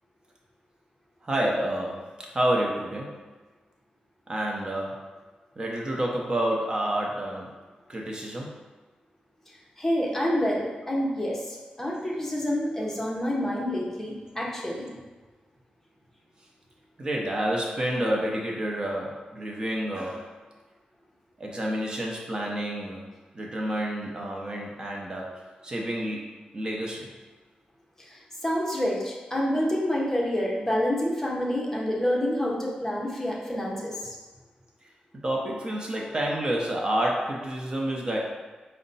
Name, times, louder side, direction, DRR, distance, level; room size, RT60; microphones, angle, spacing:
voice 1, 1.2-3.1 4.3-5.0 5.6-7.5 7.9-8.5 17.0-20.3 21.4-23.1 23.3-27.1 35.2-38.2, right 1 dB, 30° right, -2 dB, 0.8 m, -29 dB
voice 2, 9.8-11.4 11.8-14.9 28.4-33.9, equal, 10° left, -4 dB, 0.8 m, -27 dB
4.9 x 2.2 x 4.0 m, 1.3 s
wide cardioid pair, 120°, 3 cm